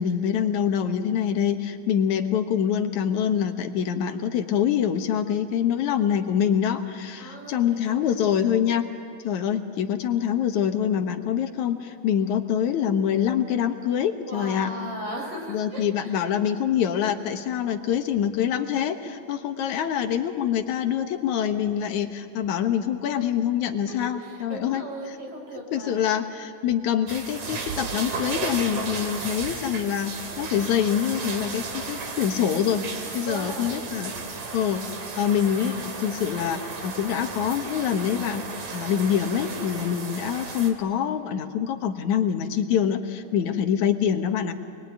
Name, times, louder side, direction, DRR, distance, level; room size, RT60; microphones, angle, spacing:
voice 1, 0.0-8.9 9.2-14.7 15.5-24.9 25.7-32.9 33.1-34.1 34.5-44.5, left 9 dB, 75° left, 6 dB, 2.6 m, -25 dB
voice 2, 7.2-8.2 14.3-16.3 23.9-26.1 33.3-33.9 43.3-43.6, equal, 50° right, 2 dB, 5.2 m, -37 dB
sound 1, 27.1-40.7, right 4 dB, 70° right, 4.1 m, -34 dB
28.0 x 21.5 x 9.3 m, 2.6 s
omnidirectional pair, 3.4 m